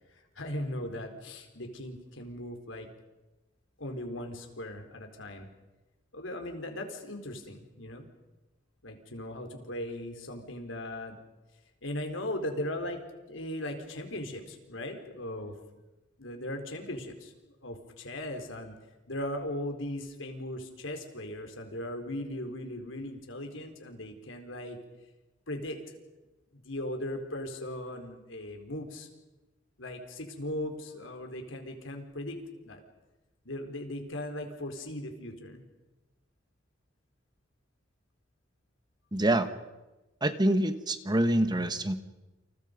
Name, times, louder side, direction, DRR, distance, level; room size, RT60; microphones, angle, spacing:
voice 1, 0.1-2.9 3.8-5.5 6.1-8.1 8.8-11.2 11.8-13.0 13.3-15.5 16.2-17.3 17.6-18.7 19.1-24.8 25.5-25.8 26.6-29.1 29.8-32.8 33.4-35.6, left 1 dB, 85° left, 4 dB, 4.4 m, -38 dB
voice 2, 39.1-39.5 40.2-42.0, right 1 dB, 20° right, 10 dB, 1.5 m, -26 dB
29.0 x 28.5 x 5.4 m, 1.1 s
head